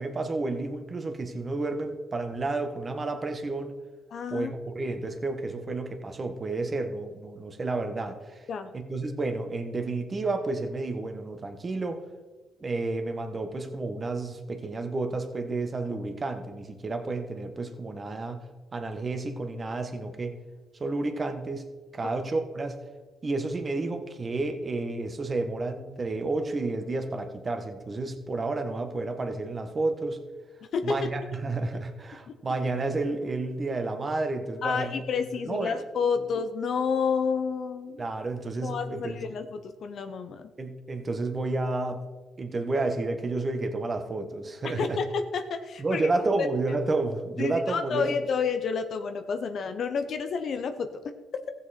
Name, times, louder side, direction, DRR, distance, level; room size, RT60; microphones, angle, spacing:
voice 1, 0.0-3.8 4.3-8.5 8.7-12.0 12.6-18.4 18.7-20.3 20.8-21.7 21.9-22.8 23.2-30.2 30.8-35.0 35.3-35.8 36.2-36.3 38.0-39.2 40.6-42.0 42.4-45.0 45.8-48.1, right 3 dB, 30° right, 6 dB, 1.3 m, -31 dB
voice 2, 4.1-4.5 8.5-8.7 22.0-22.1 30.7-31.1 32.3-32.4 34.6-38.1 38.6-40.4 44.6-46.1 46.4-46.5 47.4-51.1, left 5 dB, 60° left, 8 dB, 0.7 m, -30 dB
15.0 x 7.2 x 4.3 m, 1.3 s
cardioid pair, 90°, 0 cm